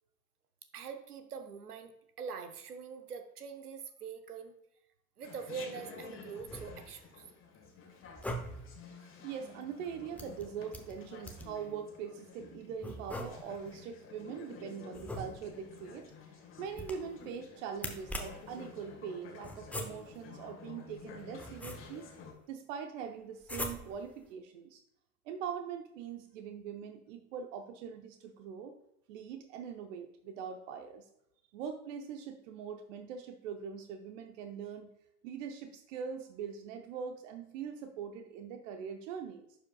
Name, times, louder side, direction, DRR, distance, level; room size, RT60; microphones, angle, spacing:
voice 1, 0.7-4.5 5.2-7.2 9.0-9.1, right 6 dB, 80° right, 8 dB, 1.0 m, -44 dB
Chatter, 5.2-22.3, left 5 dB, 30° left, 1.6 m, -52 dB
sound 1, 6.4-7.1 8.0-8.8 10.2-11.6 12.8-13.7 14.9-15.7 16.7-17.3 17.7-18.6 19.4-20.2 21.0-22.1 23.4-24.1, equal, 5° left, 0.8 m, -42 dB
voice 2, 9.2-16.1 16.6-22.1 22.5-24.8 25.2-28.8 29.1-31.1 31.5-34.9 35.2-39.5, right 7 dB, 55° right, 6 dB, 0.8 m, -42 dB
11.0 x 4.9 x 2.3 m, 0.80 s
hypercardioid pair, 90°, 45 cm